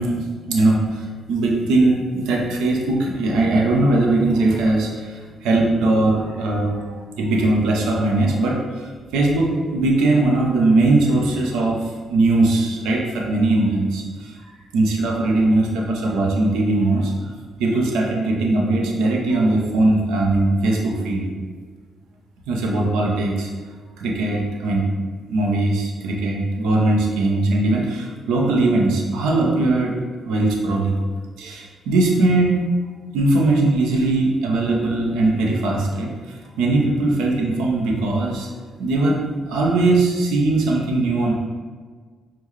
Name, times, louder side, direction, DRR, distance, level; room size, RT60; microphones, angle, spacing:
voice 1, 0.0-14.4 14.7-17.1 17.6-21.2 22.5-23.5 24.0-24.8 25.3-30.9 31.4-32.6 33.1-38.5 38.8-39.2 39.5-41.3, right 2 dB, 90° right, -1 dB, 0.6 m, -20 dB
5.5 x 2.2 x 3.1 m, 1.6 s
cardioid pair, 90°, 0 cm